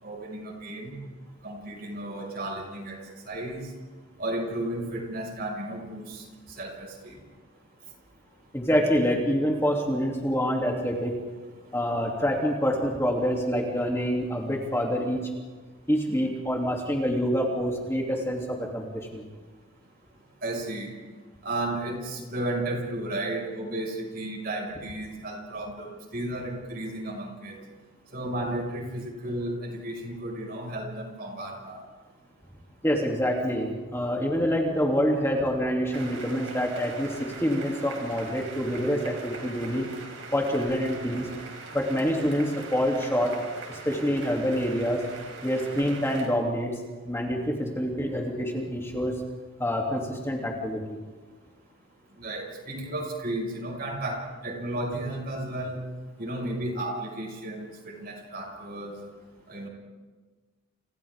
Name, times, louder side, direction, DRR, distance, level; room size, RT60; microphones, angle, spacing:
voice 1, 0.0-1.0 1.4-3.7 4.2-7.1 20.4-20.9 21.4-27.6 28.1-31.8 52.2-55.8 56.2-59.0 59.5-59.7, right 1 dB, 50° right, 1 dB, 5.5 m, -33 dB
voice 2, 8.5-11.2 11.7-15.3 15.9-19.2 32.8-39.9 40.3-41.3 41.7-43.4 43.7-45.0 45.4-46.7 47.1-49.2 49.6-51.0, equal, 15° left, -1 dB, 2.8 m, -26 dB
sound 1, 35.9-46.3, right 3 dB, 75° right, 4.6 m, -42 dB
30.0 x 29.5 x 3.7 m, 1.4 s
head